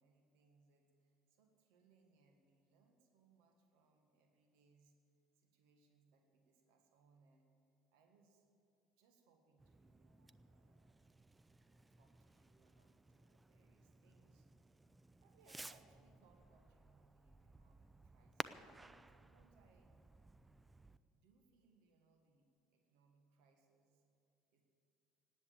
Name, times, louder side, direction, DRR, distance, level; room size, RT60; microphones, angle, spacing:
voice 1, 0.0-4.9 5.3-7.5 7.9-8.5 8.9-11.0 11.7-14.7 15.2-20.0 21.1-24.0 24.5-24.6, right 4 dB, 60° right, 5 dB, 1.7 m, -73 dB
Fireworks, 9.6-21.0, right 2 dB, 15° right, 0.5 m, -56 dB
18.5 x 8.2 x 8.7 m, 2.5 s
figure-of-eight pair, 60°, 0 cm